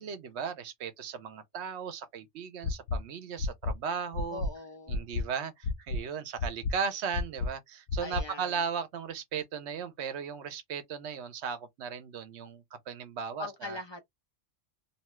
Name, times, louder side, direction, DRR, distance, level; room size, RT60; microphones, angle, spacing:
voice 1, 0.0-4.4 4.9-13.8, right 6 dB, 65° right, 0.9 m, -36 dB
sound 1, 2.6-3.0 3.4-3.7 4.1-4.5 4.9-5.2 5.6-6.0 6.4-6.7 7.1-7.5 7.9-8.2, left 3 dB, 60° left, 0.7 m, -30 dB
voice 2, 4.3-5.1 8.0-8.6 13.4-14.0, left 3 dB, 40° left, 0.4 m, -41 dB
2.8 x 2.3 x 3.0 m
omnidirectional pair, 1.3 m